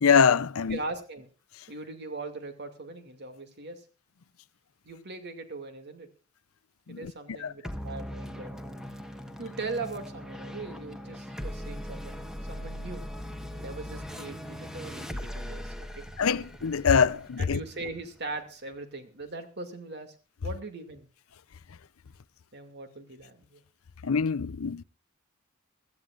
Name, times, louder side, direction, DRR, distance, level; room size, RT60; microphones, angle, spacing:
voice 1, 0.0-0.8 6.9-7.1 7.4-7.5 16.2-17.6 24.0-24.8, left 6 dB, 85° left, 0.6 m, -24 dB
voice 2, 0.7-1.3 1.7-3.8 4.8-6.1 6.9-8.5 9.4-13.1 13.4-16.0 17.4-20.1 20.4-21.1 22.5-23.6, right 3 dB, 55° right, 2.4 m, -40 dB
sound 1, 7.6-18.4, equal, 5° right, 1.2 m, -40 dB
24.0 x 14.0 x 2.5 m
head